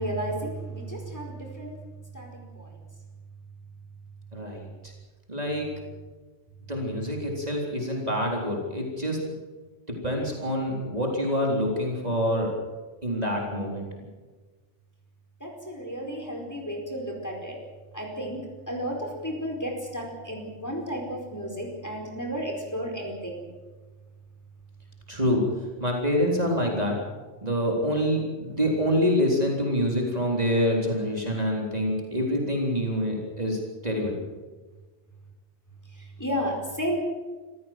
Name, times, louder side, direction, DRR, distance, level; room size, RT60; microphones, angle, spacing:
voice 1, 0.0-1.8 2.1-2.8 15.4-17.6 17.9-23.5 35.9-37.0, equal, 15° left, 1 dB, 4.8 m, -33 dB
voice 2, 4.3-4.9 5.3-5.7 6.7-9.2 9.9-12.5 13.0-13.9 25.1-27.0 27.4-34.2, equal, 35° right, -1 dB, 4.0 m, -26 dB
26.0 x 15.0 x 7.6 m, 1.3 s
omnidirectional pair, 1.2 m